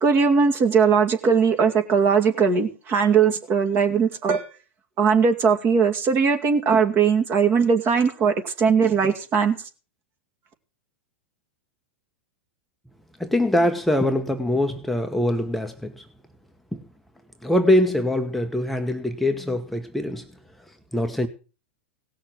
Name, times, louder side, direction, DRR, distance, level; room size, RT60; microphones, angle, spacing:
voice 1, 0.0-4.4 5.0-9.6, right 6 dB, 35° right, 2.3 m, -20 dB
voice 2, 13.2-16.1 16.7-16.8 17.4-20.3 20.9-21.3, left 1 dB, ahead, 1.0 m, -23 dB
17.5 x 6.5 x 7.6 m
hypercardioid pair, 115°, 7 cm